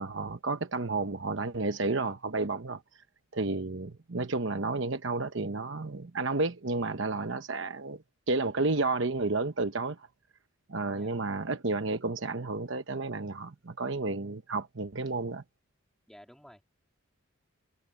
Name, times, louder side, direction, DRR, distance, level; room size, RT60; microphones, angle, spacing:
voice 1, 0.0-2.8 3.3-10.0 10.7-15.4, right 3 dB, 60° right, 0.9 m, -31 dB
voice 2, 16.1-16.6, equal, ahead, 3.1 m, -53 dB
head